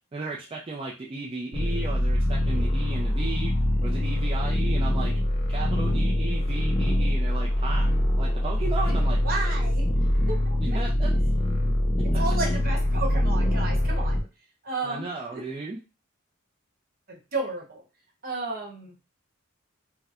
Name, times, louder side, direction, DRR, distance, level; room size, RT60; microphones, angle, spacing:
voice 1, 0.1-3.5 3.8-5.1 5.5-7.9 8.2-9.5 10.6-11.1 14.8-15.8, right 3 dB, 25° right, -3 dB, 0.4 m, -35 dB
sound 1, 1.5-14.2, left 1 dB, 30° left, 0.6 m, -24 dB
voice 2, 9.2-9.9 10.3-10.8 12.0-14.2 14.6-15.4 17.1-17.8 18.2-18.9, right 3 dB, 45° right, 0 dB, 0.9 m, -33 dB
4.2 x 2.1 x 2.4 m, 0.31 s
head